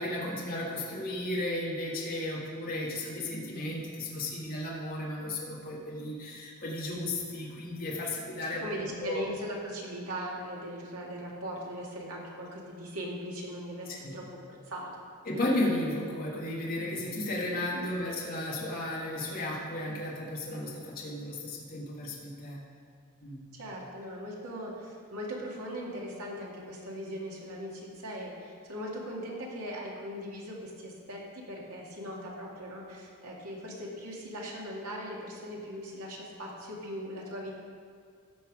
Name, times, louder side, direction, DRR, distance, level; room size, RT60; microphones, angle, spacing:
voice 1, 0.0-9.2 13.9-14.1 15.3-22.6 23.2-23.4, left 1 dB, 40° left, -4 dB, 1.7 m, -34 dB
voice 2, 8.5-14.9 17.7-17.9 23.5-37.5, equal, 85° right, -3 dB, 2.2 m, -39 dB
14.5 x 5.9 x 4.8 m, 2.1 s
head